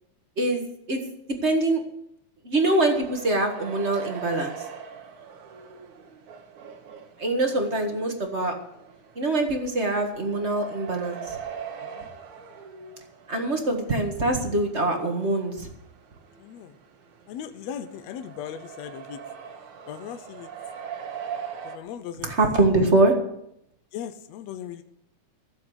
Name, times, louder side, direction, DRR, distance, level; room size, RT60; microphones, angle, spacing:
voice 1, 0.4-1.0 1.3-1.8 2.4-4.7 7.2-8.5 9.1-11.4 13.3-15.7 22.2-23.1, right 2 dB, 30° right, 3 dB, 1.4 m, -24 dB
sound 1, 2.9-21.8, right 7 dB, 85° right, 3.0 m, -42 dB
voice 2, 16.4-16.7 17.3-19.2 19.9-20.5 21.6-22.3 23.9-24.8, left 9 dB, 70° left, 9 dB, 1.9 m, -38 dB
15.0 x 7.5 x 8.0 m, 0.77 s
omnidirectional pair, 3.4 m